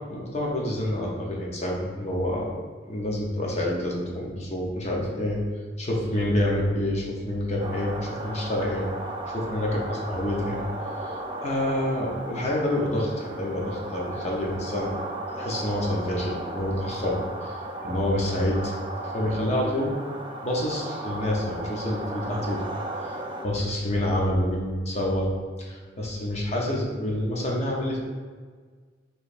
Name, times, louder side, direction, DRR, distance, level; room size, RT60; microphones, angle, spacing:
voice 1, 0.1-2.5 2.9-5.4 5.8-8.9 9.3-10.6 11.0-14.9 15.3-17.6 17.8-18.6 19.1-20.0 20.4-22.6 23.0-23.2 23.4-25.3 25.6-28.0, left 1 dB, 40° left, -3 dB, 0.7 m, -27 dB
sound 1, 7.6-23.5, right 1 dB, 30° right, 0.4 m, -35 dB
4.9 x 3.2 x 2.5 m, 1.5 s
head